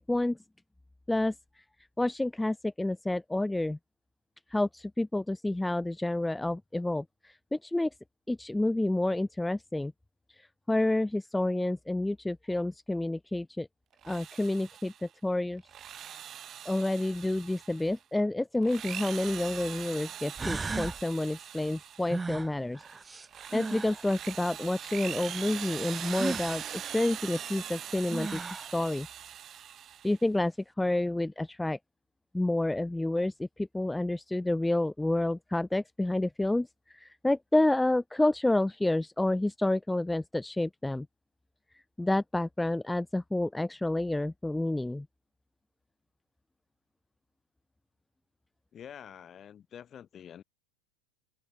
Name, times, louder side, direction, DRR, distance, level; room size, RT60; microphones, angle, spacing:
voice 1, 0.1-0.4 1.1-1.6 2.0-3.8 4.5-7.9 8.3-9.9 10.3-13.7 14.0-15.6 16.7-22.8 23.5-29.1 30.0-31.8 32.3-41.1 41.7-45.1, left 1 dB, 5° left, 0.5 m, -29 dB
Drill, 13.9-15.1 15.6-18.0 18.5-22.3 22.7-30.2, right 10 dB, 35° right, 1.4 m, -42 dB
sound 1, 19.9-20.0 20.4-21.0 22.1-24.0 26.1-26.5 27.7-27.8 28.1-28.7, right 4 dB, 15° right, 1.6 m, -36 dB
voice 2, 48.7-50.4, left 9 dB, 30° left, 3.7 m, -47 dB
hypercardioid pair, 105°, 0 cm